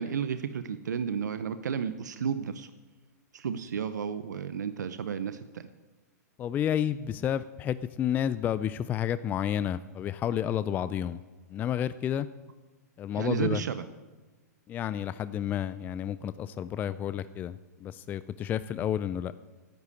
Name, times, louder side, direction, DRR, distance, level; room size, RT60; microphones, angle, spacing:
voice 1, 0.0-2.7 3.3-5.7 13.1-13.8, right 7 dB, 90° right, 12 dB, 0.7 m, -32 dB
voice 2, 6.4-11.2 11.5-12.3 13.0-13.6 14.7-19.3, left 10 dB, 20° left, 14 dB, 0.3 m, -30 dB
10.5 x 8.2 x 9.7 m, 1.2 s
hypercardioid pair, 135°, 9 cm